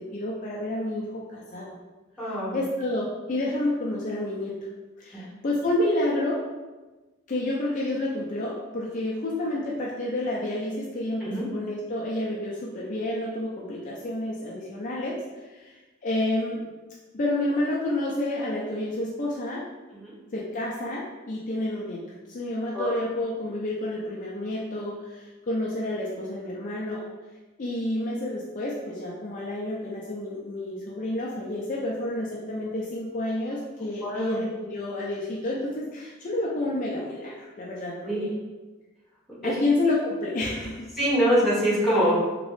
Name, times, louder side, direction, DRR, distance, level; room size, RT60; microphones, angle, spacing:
voice 1, 0.0-1.7 2.2-4.5 5.0-6.4 7.3-16.6 17.1-19.6 20.3-22.0 22.3-27.0 27.6-38.3 39.4-40.9, left 1 dB, 40° left, -4 dB, 0.4 m, -29 dB
voice 2, 2.2-2.6 5.1-5.3 11.2-11.4 19.9-20.1 22.7-23.0 34.0-34.4 38.1-38.2 39.4-39.6 40.9-42.1, equal, ahead, -9 dB, 1.2 m, -24 dB
3.1 x 2.9 x 3.1 m, 1.2 s
head